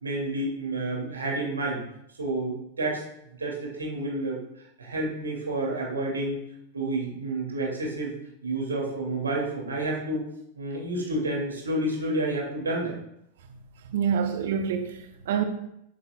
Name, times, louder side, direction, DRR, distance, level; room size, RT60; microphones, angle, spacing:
voice 1, 0.0-1.8 2.2-3.0 3.4-4.4 4.8-6.4 6.7-8.1 8.4-10.2 10.6-12.9, right 2 dB, 75° right, -1 dB, 2.2 m, -29 dB
voice 2, 13.8-15.4, right 7 dB, 55° right, 7 dB, 0.8 m, -27 dB
9.4 x 8.2 x 2.2 m, 0.78 s
figure-of-eight pair, 90°, 0 cm